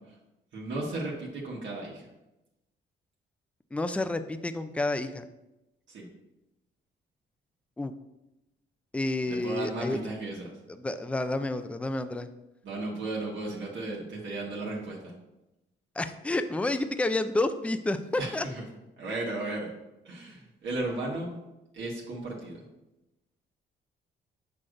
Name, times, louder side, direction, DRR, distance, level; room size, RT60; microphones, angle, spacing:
voice 1, 0.5-2.1 5.9-6.1 9.2-10.5 12.6-15.1 18.2-18.6 19.0-19.7 20.0-21.4 21.7-22.6, right 2 dB, 70° right, -3 dB, 1.4 m, -35 dB
voice 2, 3.7-5.3 7.8-7.9 8.9-10.0 10.8-12.3 16.0-18.5, left 2 dB, 5° left, 10 dB, 0.4 m, -29 dB
6.3 x 5.8 x 2.6 m, 0.95 s
cardioid pair, 90°, 20 cm